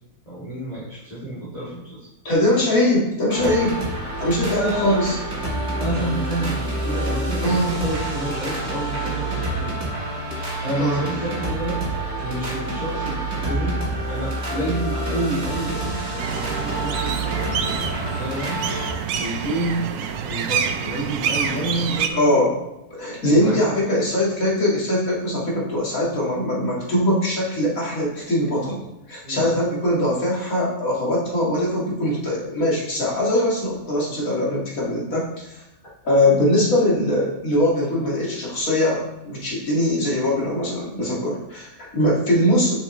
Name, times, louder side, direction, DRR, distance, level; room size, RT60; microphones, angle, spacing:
voice 1, 0.2-2.0 4.4-4.9 5.8-9.8 10.6-13.7 14.1-18.6 19.2-19.8 20.2-22.4 23.2-23.6 29.2-29.6, right 1 dB, 25° left, -12 dB, 2.9 m, -29 dB
voice 2, 2.2-3.8 4.2-5.2 7.4-7.7 10.8-11.0 22.1-22.5 22.9-28.8 29.1-35.6 36.0-42.8, left 1 dB, 65° left, -5 dB, 2.6 m, -21 dB
sound 1, 3.3-18.9, right 2 dB, 50° right, 2.3 m, -27 dB
sound 2, 16.2-22.1, right 7 dB, 85° right, 1.1 m, -27 dB
7.1 x 6.3 x 3.2 m, 0.97 s
omnidirectional pair, 1.6 m